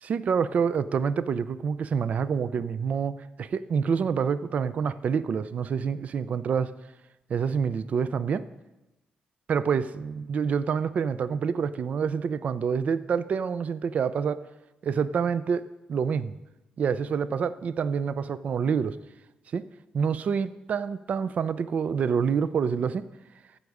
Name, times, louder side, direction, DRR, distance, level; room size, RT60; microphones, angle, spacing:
voice 1, 0.0-6.7 7.3-8.4 9.5-14.4 14.8-16.4 16.8-19.0 19.5-19.6 19.9-23.0, right 6 dB, 55° right, 16 dB, 0.4 m, -27 dB
15.0 x 5.3 x 4.8 m, 1.0 s
cardioid pair, 95°, 3 cm